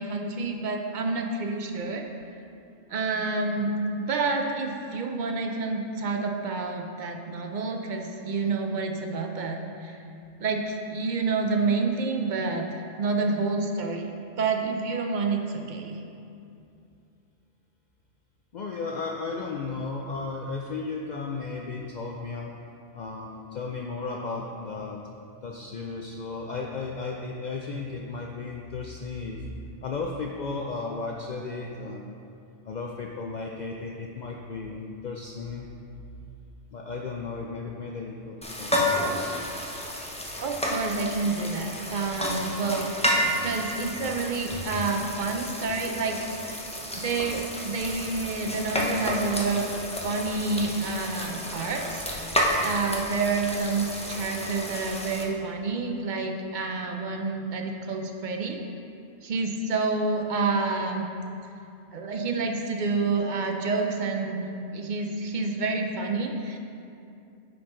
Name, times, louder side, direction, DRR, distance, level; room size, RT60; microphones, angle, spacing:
voice 1, 0.0-2.0 2.9-10.0 10.4-12.7 13.0-14.1 14.4-16.0 40.4-42.9 43.4-46.2 46.9-49.7 50.0-58.6 59.2-61.1 61.9-66.6, right 3 dB, 50° right, 2 dB, 0.6 m, -28 dB
voice 2, 18.5-22.5 22.9-25.0 25.4-29.4 29.8-32.2 32.6-35.7 36.7-39.2, left 4 dB, 85° left, 0 dB, 0.4 m, -34 dB
sound 1, 38.4-55.2, equal, 10° left, 0.4 m, -31 dB
9.5 x 4.6 x 3.8 m, 2.6 s
omnidirectional pair, 1.3 m